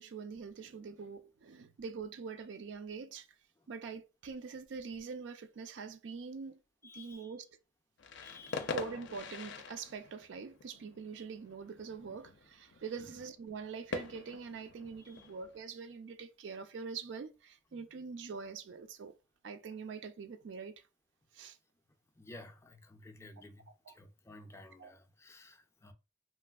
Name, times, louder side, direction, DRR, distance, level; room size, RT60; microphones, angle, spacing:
voice 1, 0.0-3.3 3.7-6.6 6.9-7.5 8.7-19.1 19.4-20.8 21.3-21.6 23.9-24.0 24.8-24.9, right 5 dB, 85° right, 0.4 m, -44 dB
voice 2, 6.8-7.3 8.2-8.7 13.0-13.1 15.0-15.3 17.7-17.8 22.2-25.9, left 2 dB, 15° left, 0.3 m, -54 dB
sound 1, 8.0-15.6, left 4 dB, 80° left, 0.4 m, -45 dB
3.1 x 2.5 x 2.3 m
head